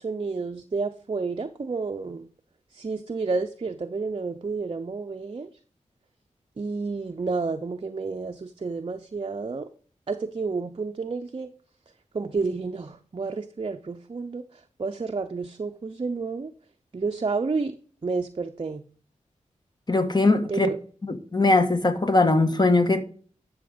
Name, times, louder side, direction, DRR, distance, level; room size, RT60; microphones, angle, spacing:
voice 1, 0.0-2.3 2.7-5.5 6.6-9.7 10.1-11.5 12.1-16.5 16.9-17.7 18.0-18.8 20.5-20.8, right 4 dB, 40° right, 0.6 m, -30 dB
voice 2, 19.9-20.7 21.0-23.0, left 2 dB, 35° left, 1.4 m, -21 dB
11.0 x 6.3 x 5.1 m
cardioid pair, 45°, 13 cm